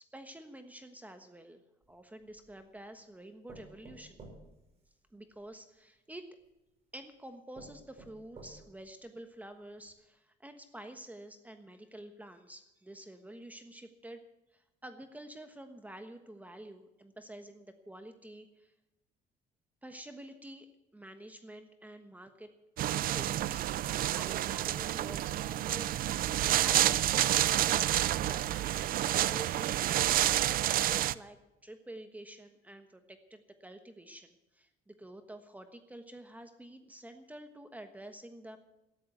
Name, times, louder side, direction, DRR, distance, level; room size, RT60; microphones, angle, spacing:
voice 1, 0.0-1.6 1.9-4.2 5.1-6.4 6.9-14.2 14.5-18.7 19.8-20.7 20.9-22.5 22.8-23.7 24.0-25.9 26.5-38.6, right 1 dB, 10° right, 7 dB, 1.3 m, -49 dB
sound 1, 1.8-2.7 3.5-5.4 6.4-6.5 7.1-7.2 7.5-8.9 9.4-9.5 9.8-9.9, right 2 dB, 40° right, 6.1 m, -53 dB
sound 2, 22.8-31.1, right 13 dB, 60° right, 0.5 m, -29 dB
13.5 x 10.5 x 8.3 m, 0.95 s
cardioid pair, 110°, 17 cm